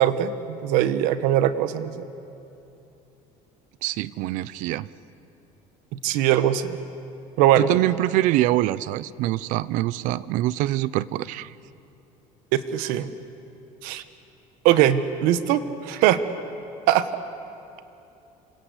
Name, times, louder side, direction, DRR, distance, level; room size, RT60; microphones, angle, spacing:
voice 1, 0.0-2.0 6.0-6.8 7.4-7.7 12.5-13.1 13.8-14.0 14.6-16.2 16.9-17.0, right 11 dB, 85° right, 12 dB, 1.2 m, -21 dB
voice 2, 3.8-4.9 7.6-11.5, right 16 dB, 65° right, 19 dB, 0.7 m, -24 dB
27.5 x 26.0 x 8.1 m, 2.9 s
cardioid pair, 170°, 14 cm